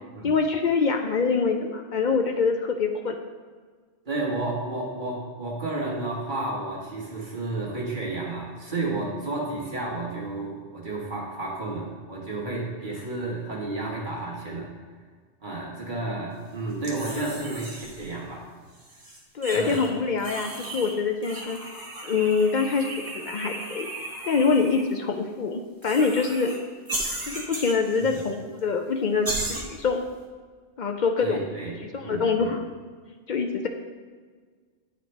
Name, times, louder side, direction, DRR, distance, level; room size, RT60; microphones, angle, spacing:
voice 1, 0.2-3.2 19.3-21.6 22.0-23.9 24.2-26.6 27.2-30.0 30.8-31.4 31.8-32.6 33.3-33.7, left 5 dB, 55° left, 4 dB, 0.5 m, -25 dB
voice 2, 4.0-14.7 15.4-18.5 19.5-19.8 31.2-31.7 32.0-32.5, right 2 dB, 45° right, -4 dB, 1.6 m, -31 dB
sound 1, 16.8-18.1 18.7-19.9 20.2-21.0 21.2-24.9 25.8-26.6 26.9-28.3 28.6-28.7 29.2-29.6, right 1 dB, 20° right, 1.0 m, -35 dB
9.1 x 4.9 x 3.3 m, 1.5 s
omnidirectional pair, 1.2 m